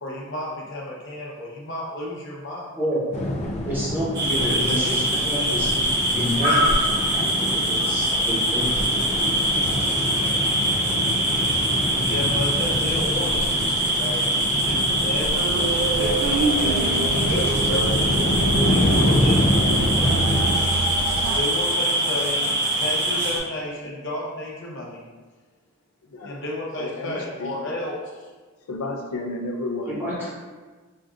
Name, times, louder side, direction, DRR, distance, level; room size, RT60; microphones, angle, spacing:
voice 1, 0.0-2.7 12.0-14.2 14.6-15.7 16.0-18.1 18.6-20.7 21.3-25.0 26.2-28.3, left 1 dB, 55° left, -5 dB, 0.8 m, -32 dB
sound 1, 3.1-20.6, left 1 dB, 30° left, 0.3 m, -27 dB
voice 2, 3.7-5.8 6.1-9.5 29.9-30.3, equal, 10° right, -8 dB, 1.0 m, -29 dB
sound 2, 4.1-23.4, right 1 dB, 50° right, 0.8 m, -23 dB
voice 3, 11.2-11.5 17.7-18.1 20.0-20.1 22.1-22.8 23.8-23.9 26.1-26.4 26.8-27.7 28.7-30.0, left 2 dB, 85° left, 3 dB, 0.5 m, -34 dB
sound 3, 15.5-21.4, right 3 dB, 75° right, 0.3 m, -26 dB
5.3 x 2.5 x 2.4 m, 1.4 s
head